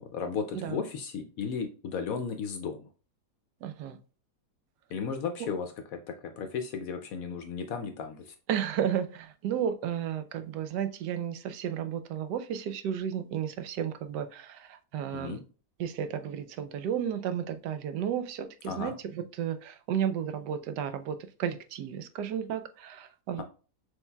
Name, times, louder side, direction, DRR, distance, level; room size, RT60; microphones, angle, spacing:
voice 1, 0.1-2.9 4.9-8.3 15.1-15.4 18.7-19.0, left 6 dB, 70° left, 0.9 m, -35 dB
voice 2, 3.6-4.0 8.5-15.4 15.8-23.4, right 9 dB, 80° right, 1.2 m, -33 dB
6.3 x 3.2 x 2.2 m
omnidirectional pair, 1.8 m